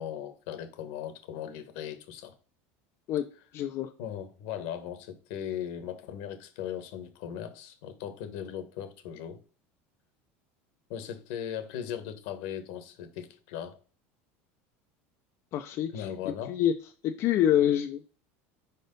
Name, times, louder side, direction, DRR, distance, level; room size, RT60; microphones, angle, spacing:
voice 1, 0.0-2.3 4.0-9.4 10.9-13.8 15.9-16.6, left 9 dB, 70° left, 1.3 m, -38 dB
voice 2, 3.5-3.9 15.5-16.1 16.5-16.7 17.0-18.2, left 10 dB, 50° left, 0.6 m, -26 dB
4.9 x 4.3 x 5.2 m
supercardioid pair, 125°, 7 cm